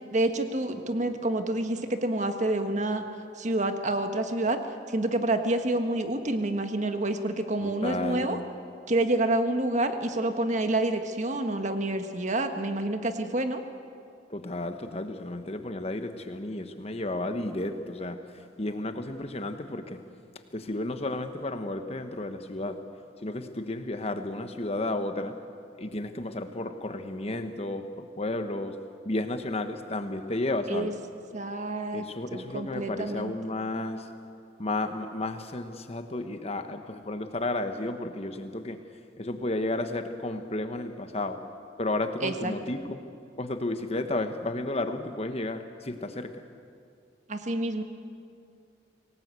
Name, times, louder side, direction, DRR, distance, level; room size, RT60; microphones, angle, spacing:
voice 1, 0.1-3.0 3.4-4.6 4.9-8.4 8.9-13.6 30.7-30.9 31.3-32.1 32.3-33.3 42.2-42.5 47.3-47.8, right 1 dB, 40° right, 7 dB, 1.5 m, -28 dB
voice 2, 7.6-8.4 14.3-20.0 20.5-22.8 23.2-25.3 25.8-28.8 29.0-30.9 31.9-34.1 34.6-38.8 39.2-41.4 41.8-43.0 43.4-46.3, left 2 dB, 35° left, 8 dB, 1.2 m, -32 dB
24.5 x 18.5 x 8.3 m, 2.4 s
head